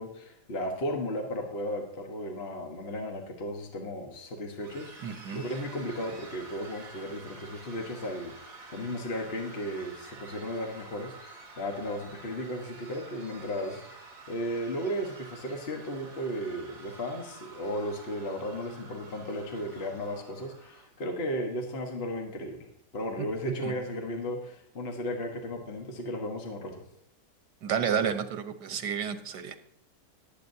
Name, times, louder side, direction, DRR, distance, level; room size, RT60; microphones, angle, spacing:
voice 1, 0.0-22.7 22.9-26.7, equal, 40° left, 2 dB, 1.5 m, -35 dB
sound 1, 4.6-20.9, right 3 dB, 55° right, 2.2 m, -49 dB
voice 2, 5.0-5.4 23.2-23.3 23.6-23.8 27.6-29.6, right 7 dB, 80° right, 9 dB, 1.6 m, -31 dB
19.0 x 8.5 x 2.8 m, 0.75 s
omnidirectional pair, 1.8 m